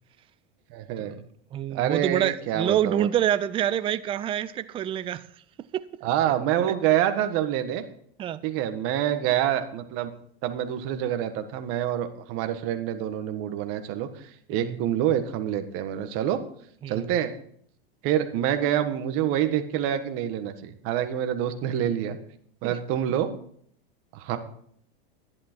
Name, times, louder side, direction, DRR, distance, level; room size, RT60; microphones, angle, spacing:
voice 1, 0.7-1.2 1.7-3.1 6.0-7.8 8.4-10.1 10.4-14.1 14.5-16.4 16.9-17.3 18.0-22.2 22.6-23.3 24.1-24.4, right 10 dB, 50° right, 1.5 m, -26 dB
voice 2, 1.5-5.3 5.7-5.8 8.2-8.4 14.5-14.8 16.8-17.1 22.6-22.8, right 10 dB, 20° right, 0.4 m, -27 dB
11.0 x 11.0 x 4.5 m
supercardioid pair, 135°, 30 cm